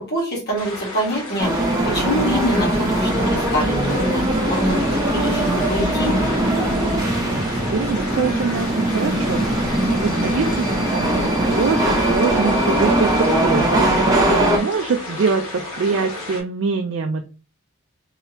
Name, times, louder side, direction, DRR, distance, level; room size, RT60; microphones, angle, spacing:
voice 1, 0.0-6.3, equal, 45° left, -4 dB, 1.4 m, -25 dB
sound 1, 0.6-16.4, left 2 dB, 75° left, 1.3 m, -33 dB
sound 2, 1.4-14.6, right 1 dB, 15° right, 0.8 m, -20 dB
sound 3, 4.3-13.2, left 1 dB, 20° left, 0.6 m, -39 dB
voice 2, 7.3-9.6 9.9-17.2, right 5 dB, 60° right, 4 dB, 0.4 m, -24 dB
3.4 x 2.7 x 2.8 m, 0.34 s
head